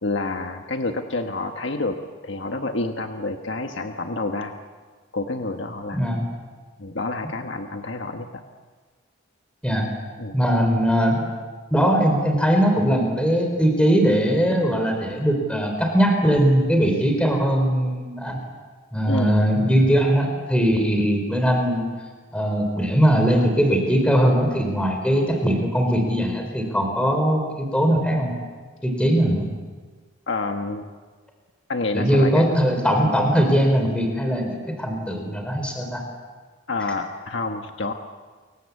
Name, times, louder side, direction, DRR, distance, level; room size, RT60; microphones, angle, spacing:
voice 1, 0.0-4.5 5.1-6.0 6.8-8.4 10.2-10.4 19.1-19.4 30.3-30.8 31.7-32.5 36.7-37.9, left 2 dB, 65° left, 5 dB, 1.5 m, -28 dB
voice 2, 5.9-6.3 9.6-9.9 10.3-11.2 11.7-18.4 18.9-21.9 22.3-28.4 28.8-29.5 31.9-36.0, equal, 5° left, 3 dB, 4.3 m, -20 dB
29.5 x 23.0 x 8.4 m, 1.5 s
head